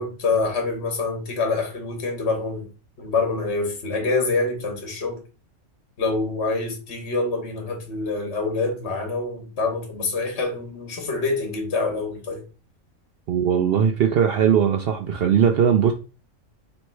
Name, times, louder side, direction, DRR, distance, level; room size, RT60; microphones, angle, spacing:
voice 1, 0.0-2.7 3.0-5.2 6.0-12.4, left 3 dB, 60° left, 1.3 m, -26 dB
voice 2, 13.3-15.9, right 8 dB, 65° right, 0.6 m, -19 dB
3.1 x 3.1 x 4.4 m
omnidirectional pair, 1.3 m